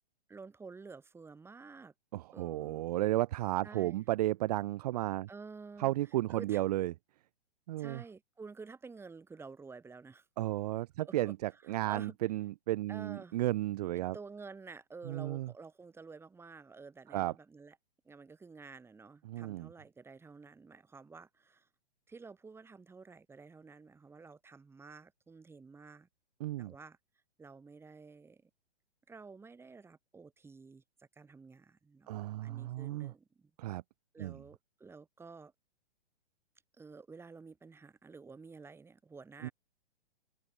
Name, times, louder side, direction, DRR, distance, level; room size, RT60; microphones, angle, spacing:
voice 1, 0.3-1.9 2.3-2.9 3.6-4.0 5.3-5.9 6.3-6.6 7.8-10.3 11.0-12.2 12.9-13.4 13.9-17.8 18.0-21.7 22.1-26.1 26.6-27.0 27.4-28.5 29.1-33.5 34.1-35.5 36.8-39.5, right 4 dB, 5° right, 2.8 m, -51 dB
voice 2, 2.1-5.3 5.8-6.9 7.7-8.0 10.4-14.2 15.0-15.5 17.1-17.3 19.3-19.7 26.4-26.7 32.1-33.1 33.6-33.8 34.2-34.4 39.4-39.5, right 16 dB, 35° right, 0.6 m, -33 dB
hypercardioid pair, 140°, 33 cm